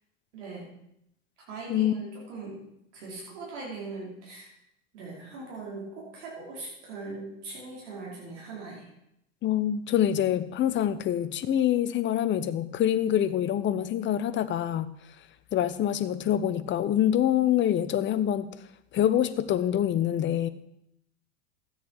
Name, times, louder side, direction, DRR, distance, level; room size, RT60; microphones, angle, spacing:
voice 1, 0.3-0.7 1.5-2.6 2.9-4.5 4.9-8.8, right 3 dB, 65° right, -4 dB, 5.0 m, -40 dB
voice 2, 9.4-14.9 15.5-18.5 18.9-20.5, left 11 dB, 30° left, 13 dB, 0.9 m, -25 dB
13.5 x 9.4 x 4.8 m, 0.79 s
hypercardioid pair, 95°, 39 cm